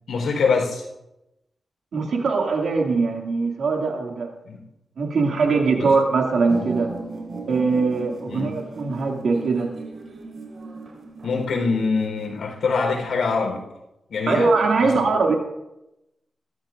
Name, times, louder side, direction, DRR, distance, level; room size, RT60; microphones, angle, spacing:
voice 1, 0.1-0.9 4.5-4.6 5.8-5.9 8.3-8.5 11.2-13.7 14.1-14.5 14.8-14.9, left 4 dB, 90° left, 1 dB, 4.1 m, -24 dB
voice 2, 1.9-4.3 5.0-6.9 7.5-9.7 14.3-15.4, right 4 dB, 80° right, 1 dB, 2.4 m, -21 dB
sound 1, 6.5-12.4, right 3 dB, 60° right, 4.3 m, -36 dB
23.0 x 13.5 x 2.6 m, 0.91 s
wide cardioid pair, 95°, 0 cm